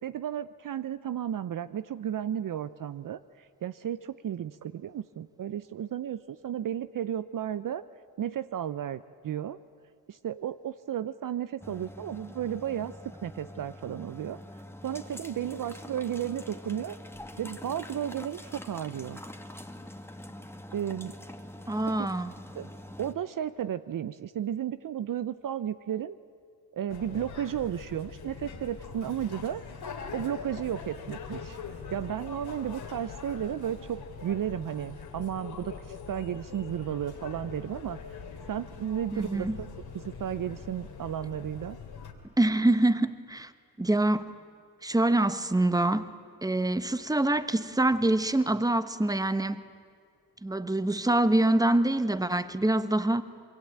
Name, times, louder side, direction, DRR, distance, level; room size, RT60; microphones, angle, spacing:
voice 1, 0.0-7.8 8.2-9.6 10.1-12.9 13.2-14.4 14.8-17.0 17.4-19.2 20.7-21.1 22.0-22.1 22.6-22.7 23.0-26.2 26.7-29.6 30.1-31.6 31.9-38.0 38.5-39.7 39.9-41.8, right 10 dB, 55° right, 0.7 m, -33 dB
sound 1, 11.6-23.1, left 1 dB, 5° left, 1.9 m, -45 dB
voice 2, 21.7-22.3 39.1-39.6 42.4-43.5 43.8-44.3 44.8-46.0 46.4-49.6 50.4-53.2, right 1 dB, 10° right, 1.2 m, -25 dB
sound 2, 26.9-42.1, left 5 dB, 70° left, 3.1 m, -43 dB
26.0 x 22.0 x 8.7 m
supercardioid pair, 60°, 39 cm